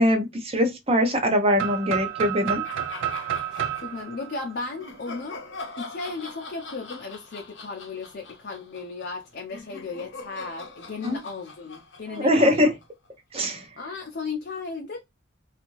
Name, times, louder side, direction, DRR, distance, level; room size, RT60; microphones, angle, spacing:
voice 1, 0.0-2.6 11.0-11.2 12.1-12.7 13.3-13.7, equal, 30° right, 0.6 m, -22 dB
sound 1, 1.6-5.4, right 10 dB, 80° right, 0.4 m, -31 dB
sound 2, 2.6-4.3 4.8-13.1, left 3 dB, 70° left, 0.8 m, -42 dB
voice 2, 3.5-5.4 5.8-12.7 13.8-15.0, left 4 dB, 50° left, 0.5 m, -35 dB
2.6 x 2.5 x 3.0 m
head